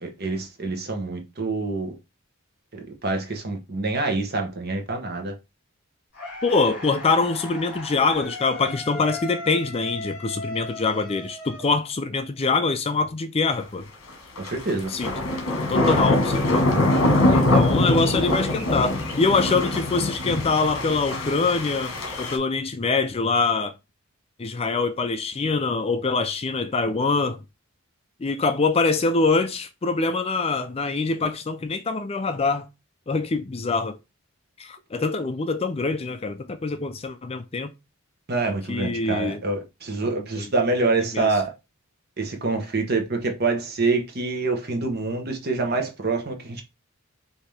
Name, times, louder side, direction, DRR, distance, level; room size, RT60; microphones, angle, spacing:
voice 1, 0.0-1.9 3.0-5.3 14.4-14.9 38.3-41.5 42.2-46.6, right 3 dB, 45° right, 1.0 m, -26 dB
sound 1, 6.1-12.2, left 2 dB, 55° left, 2.5 m, -37 dB
voice 2, 6.4-13.9 14.9-15.2 15.7-16.7 17.3-23.7 24.4-27.4 28.2-32.7 33.1-34.0 34.6-37.7 38.7-39.4 40.4-40.5 41.1-41.3, left 4 dB, 30° left, 0.4 m, -24 dB
sound 2, 14.4-22.4, left 1 dB, 70° left, 1.3 m, -23 dB
5.5 x 2.8 x 3.3 m
head